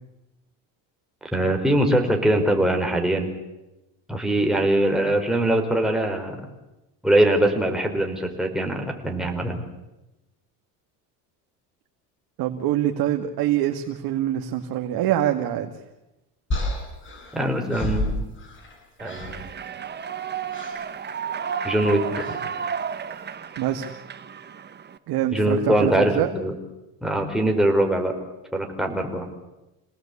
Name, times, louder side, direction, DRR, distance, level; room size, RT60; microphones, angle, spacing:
voice 1, 1.3-3.3 4.1-6.4 7.0-9.6 17.3-18.1 19.0-19.5 21.6-22.3 25.3-26.5 27.0-28.2 28.5-29.3, right 1 dB, ahead, 2 dB, 4.8 m, -22 dB
voice 2, 12.4-15.7 23.6-23.9 25.1-26.3, right 12 dB, 60° right, 5 dB, 2.1 m, -24 dB
sound 1, 16.5-18.8 19.0-19.5 20.5-20.8 22.2-22.5, left 1 dB, 30° left, 7.6 m, -30 dB
Human voice / Clapping / Cheering, 19.0-25.0, right 7 dB, 25° right, 1.2 m, -32 dB
28.0 x 19.0 x 8.5 m, 0.97 s
cardioid pair, 125°, 39 cm